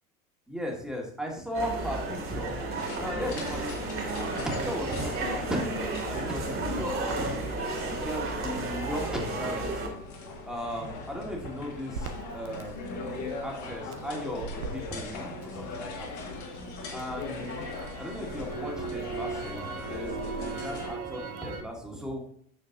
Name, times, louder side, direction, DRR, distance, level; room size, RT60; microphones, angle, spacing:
voice 1, 0.5-2.5 3.0-4.0 4.3-7.4 7.8-9.8 10.5-16.1 16.9-17.5 18.0-22.2, equal, ahead, 0 dB, 1.8 m, -36 dB
sound 1, 1.5-9.9, right 2 dB, 30° right, 2.2 m, -33 dB
sound 2, 2.8-20.9, left 3 dB, 40° left, 1.9 m, -40 dB
Crackle, 11.9-16.1 16.5-21.6, right 5 dB, 75° right, 0.8 m, -39 dB
8.1 x 6.4 x 2.6 m, 0.67 s
figure-of-eight pair, 75°, 43 cm